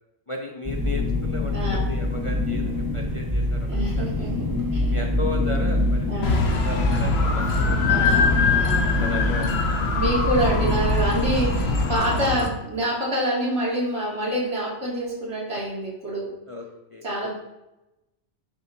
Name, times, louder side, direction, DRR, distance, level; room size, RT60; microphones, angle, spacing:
voice 1, 0.3-4.3 4.9-8.3 9.0-9.7 16.5-16.6 16.9-17.0, left 2 dB, 30° left, 1 dB, 0.8 m, -35 dB
sound 1, 0.6-12.0, left 1 dB, 15° right, 1.5 m, -25 dB
voice 2, 1.5-1.9 3.7-4.9 6.1-6.5 7.9-9.0 9.9-16.3 17.0-17.3, right 1 dB, 65° right, -4 dB, 2.9 m, -27 dB
sound 2, 6.2-12.5, left 4 dB, 60° left, 1.2 m, -24 dB
11.0 x 8.3 x 2.8 m, 0.94 s
omnidirectional pair, 1.3 m